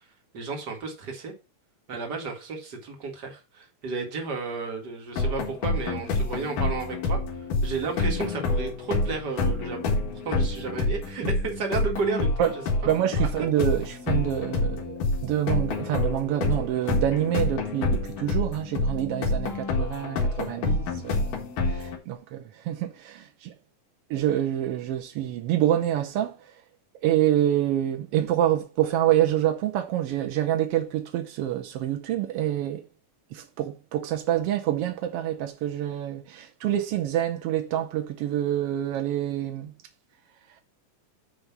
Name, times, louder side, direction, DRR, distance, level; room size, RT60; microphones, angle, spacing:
voice 1, 0.3-1.3 1.9-10.0 10.3-12.5 13.2-13.3, right 4 dB, 35° right, 2.1 m, -32 dB
sound 1, 5.2-22.0, left 2 dB, 80° left, 3.3 m, -27 dB
voice 2, 12.8-23.5 24.1-26.5 27.0-32.8 33.3-39.7, right 12 dB, 85° right, 1.3 m, -27 dB
9.5 x 3.4 x 6.0 m
omnidirectional pair, 3.7 m